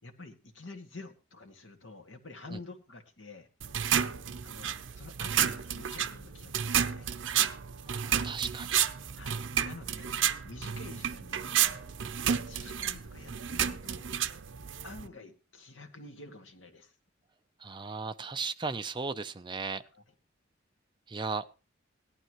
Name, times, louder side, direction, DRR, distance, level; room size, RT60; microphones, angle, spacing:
voice 1, 0.0-3.5 4.4-7.1 9.2-10.2 10.4-14.1 14.8-16.9 19.9-20.0, left 2 dB, 75° left, 2.1 m, -49 dB
sound 1, 3.6-15.1, right 9 dB, 80° right, 0.7 m, -31 dB
voice 2, 7.8-8.9 17.6-19.8 21.1-21.4, right 4 dB, 25° right, 0.6 m, -36 dB
17.5 x 11.5 x 3.1 m
head